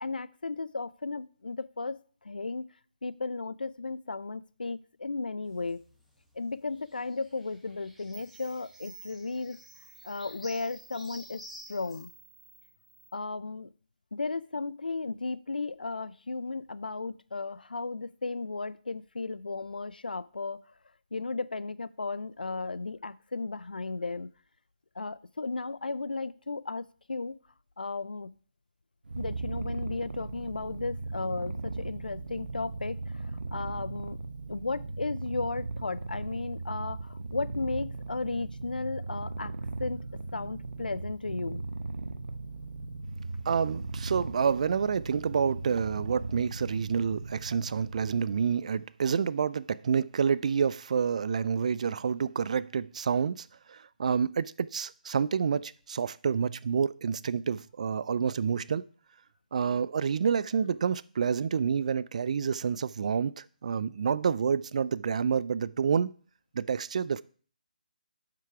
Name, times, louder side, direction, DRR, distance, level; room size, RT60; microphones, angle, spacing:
voice 1, 0.0-2.0 2.2-2.6 3.0-5.8 6.4-9.6 10.0-11.4 11.7-12.1 13.1-13.7 14.1-20.6 21.1-24.3 25.0-27.4 27.8-28.3 29.2-33.0 33.5-34.2 34.5-39.5 39.8-40.0 40.3-41.6, left 3 dB, 80° left, 0.5 m, -35 dB
sound 1, 5.5-12.0, equal, ahead, 1.4 m, -53 dB
sound 2, 7.7-7.8 8.1-13.1, right 4 dB, 20° right, 1.5 m, -53 dB
Purr, 29.0-48.4, right 3 dB, 75° right, 1.0 m, -38 dB
voice 2, 43.5-58.8 59.5-66.1 66.5-67.2, right 6 dB, 50° right, 0.4 m, -28 dB
8.3 x 5.9 x 4.7 m
figure-of-eight pair, 150°, 5 cm